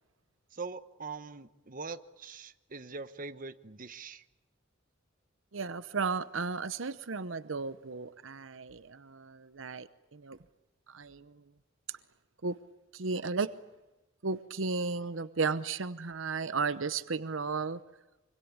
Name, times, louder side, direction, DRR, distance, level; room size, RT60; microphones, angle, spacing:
voice 1, 0.5-4.2, right 4 dB, 45° right, 11 dB, 1.2 m, -42 dB
voice 2, 5.5-10.4 10.9-11.4 11.9-12.0 12.4-12.6 12.9-13.5 14.2-17.8, right 4 dB, 80° right, 14 dB, 0.9 m, -34 dB
25.5 x 25.0 x 8.7 m, 1.0 s
head